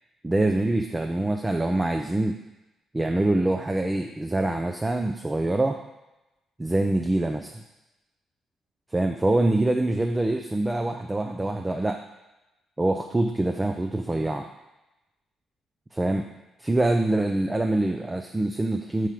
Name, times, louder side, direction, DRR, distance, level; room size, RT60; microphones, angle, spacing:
voice 1, 0.2-2.4 2.9-5.8 6.6-7.6 8.9-12.0 12.8-14.5 15.9-16.2 16.6-19.1, right 2 dB, 15° right, 4 dB, 0.5 m, -25 dB
5.3 x 4.8 x 5.9 m, 0.98 s
cardioid pair, 90°, 0 cm